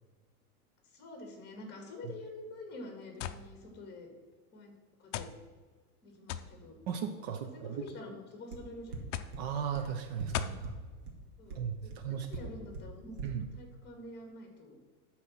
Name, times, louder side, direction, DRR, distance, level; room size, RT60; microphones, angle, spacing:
voice 1, 0.8-4.1 4.5-4.7 5.0-5.3 6.0-6.8 7.1-7.2 7.5-9.2 11.4-13.2 13.5-14.8, left 2 dB, 20° left, 3 dB, 2.1 m, -47 dB
sound 1, 3.2-3.4 4.3-4.4 5.1-5.4 6.3-6.5 7.5-8.0 9.1-9.4 10.3-10.6, left 10 dB, 55° left, 0.6 m, -37 dB
voice 2, 6.9-7.8 9.4-10.7 11.5-11.8 12.0-12.3 13.2-13.4, right 8 dB, 45° right, 7 dB, 0.7 m, -36 dB
sound 2, 8.5-8.6 8.9-9.0 9.3-9.4 9.7-9.8 10.2-10.3 10.6-10.7 11.1-11.2 11.5-11.6 11.9-12.0 12.3-12.4 12.7-12.8 13.2-13.3, right 5 dB, 75° right, 2.1 m, -40 dB
12.5 x 4.3 x 5.8 m, 1.4 s
supercardioid pair, 150°, 45 cm